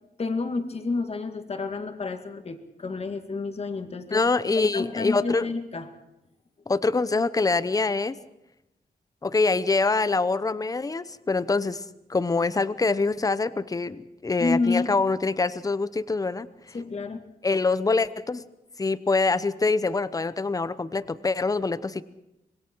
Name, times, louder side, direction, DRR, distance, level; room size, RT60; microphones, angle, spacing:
voice 1, 0.2-4.2 4.6-5.9 14.4-15.0 16.7-17.2, left 3 dB, 40° left, 6 dB, 2.2 m, -29 dB
voice 2, 4.1-5.5 6.7-8.2 9.2-11.8 12.1-16.5 17.4-18.4 18.8-22.0, left 3 dB, 20° left, 15 dB, 0.8 m, -25 dB
26.0 x 22.0 x 4.6 m, 0.89 s
wide cardioid pair, 130°, 16 cm